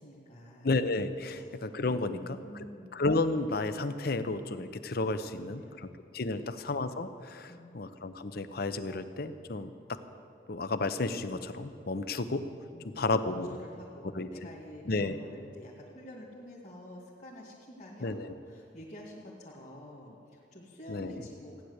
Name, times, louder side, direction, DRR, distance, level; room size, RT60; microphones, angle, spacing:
voice 1, 0.0-0.7 1.3-1.4 1.9-2.9 5.4-5.9 6.3-6.6 7.5-7.8 12.7-13.1 13.4-18.2 18.4-21.6, left 1 dB, 40° left, -5 dB, 2.2 m, -49 dB
voice 2, 0.6-2.7 2.9-10.0 10.5-12.4 13.0-13.5 14.1-14.3 14.9-15.2 18.0-18.4 20.9-21.1, left 3 dB, 55° left, 11 dB, 0.8 m, -32 dB
15.5 x 10.5 x 8.1 m, 2.6 s
head